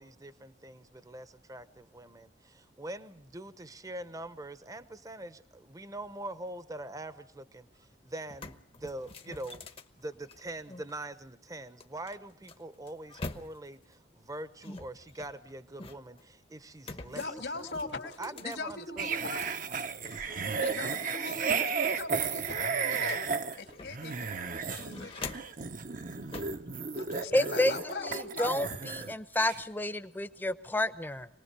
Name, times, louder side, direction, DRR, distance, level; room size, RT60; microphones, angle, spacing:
voice 1, 0.0-17.3 17.5-17.6 18.2-19.3, right 1 dB, 20° right, 12 dB, 0.9 m, -43 dB
sound 1, 7.8-7.9 8.2-10.9 11.8-13.8 14.6-16.2 16.8-19.2 19.6-20.7 21.0-21.1 21.5-24.1 24.5-25.7 26.3-26.6, left 3 dB, 35° left, 1.0 m, -46 dB
voice 2, 17.0-19.6 20.6-24.4 24.7-25.2 26.9-28.8, left 3 dB, 75° left, 5 dB, 2.6 m, -40 dB
sound 2, 19.0-29.1 29.4-29.6, right 5 dB, 50° right, 0.9 m, -33 dB
voice 3, 27.3-27.7 28.0-31.3, left 1 dB, 10° left, 11 dB, 0.9 m, -30 dB
25.5 x 19.5 x 6.8 m, 0.65 s
head